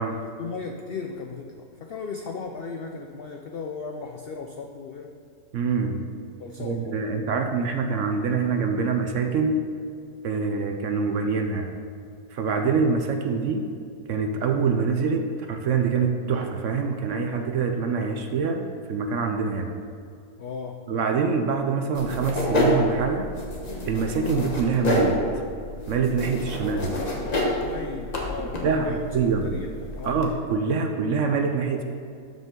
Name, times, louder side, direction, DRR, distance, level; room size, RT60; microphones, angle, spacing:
voice 1, 0.0-5.2 6.4-7.1 20.4-20.9 26.6-29.1 29.4-30.2, left 5 dB, 80° left, 3 dB, 0.5 m, -36 dB
voice 2, 5.5-6.0 6.6-9.6 10.2-11.7 12.3-13.7 14.1-19.7 20.9-23.3 23.9-25.2 25.9-26.9 28.6-29.5 30.0-31.8, right 5 dB, 65° right, 5 dB, 0.8 m, -25 dB
sound 1, 21.9-30.3, left 1 dB, 30° left, 1.0 m, -28 dB
12.5 x 5.3 x 3.7 m, 2.3 s
omnidirectional pair, 1.6 m